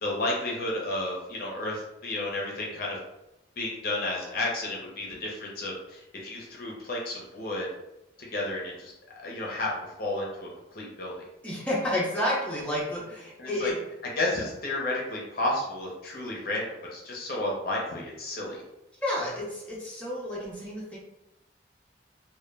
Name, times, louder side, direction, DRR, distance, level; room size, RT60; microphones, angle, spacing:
voice 1, 0.0-3.0 3.6-7.7 8.3-8.9 9.2-9.7 10.0-11.1 13.4-13.7 14.2-18.6, left 2 dB, 50° left, -2 dB, 0.5 m, -32 dB
voice 2, 11.4-13.8 19.0-21.0, left 1 dB, 5° left, -6 dB, 0.6 m, -30 dB
2.2 x 2.0 x 3.2 m, 0.94 s
head